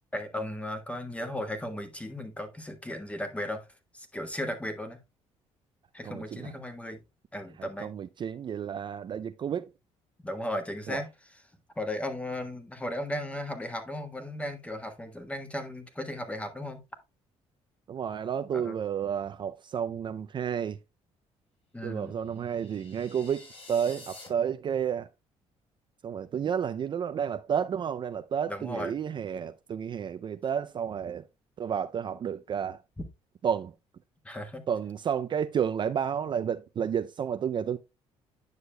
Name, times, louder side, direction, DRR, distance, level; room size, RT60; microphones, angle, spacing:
voice 1, 0.1-3.7 3.9-5.0 5.9-7.0 7.3-7.9 10.2-11.1 11.8-16.8 18.5-18.8 21.7-22.2 28.5-29.0 34.2-34.6, left 1 dB, 10° left, 1.3 m, -36 dB
voice 2, 6.0-6.5 7.6-9.7 10.9-11.0 17.9-20.8 21.8-25.1 26.0-31.2 31.6-32.8 33.4-33.7 34.7-37.8, right 8 dB, 40° right, 0.4 m, -31 dB
sound 1, 22.3-24.3, left 2 dB, 50° left, 4.8 m, -49 dB
9.5 x 6.5 x 2.2 m
cardioid pair, 95°, 12 cm